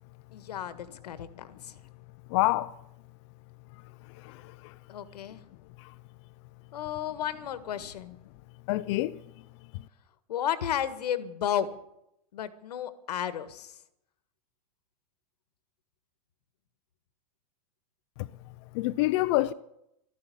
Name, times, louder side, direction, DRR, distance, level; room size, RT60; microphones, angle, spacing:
voice 1, 0.3-1.7 4.9-5.4 6.7-8.1 10.3-11.7 12.3-13.7, left 10 dB, 90° left, 1.6 m, -33 dB
voice 2, 2.3-2.7 4.2-4.3 8.7-9.1 18.7-19.5, left 18 dB, 50° left, 0.6 m, -26 dB
13.0 x 11.0 x 9.9 m
supercardioid pair, 145°, 20 cm